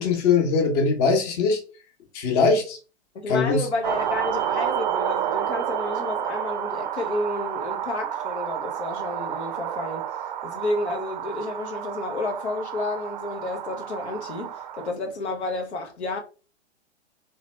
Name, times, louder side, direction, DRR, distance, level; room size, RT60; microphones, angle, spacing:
voice 1, 0.0-1.6 2.1-2.8 3.3-3.6, left 4 dB, 35° left, 1.0 m, -21 dB
voice 2, 3.1-14.5 14.8-16.2, left 2 dB, 70° left, 0.8 m, -31 dB
sound 1, 3.8-14.9, right 10 dB, 40° right, 0.5 m, -30 dB
3.1 x 2.8 x 3.2 m
figure-of-eight pair, 110°, 35 cm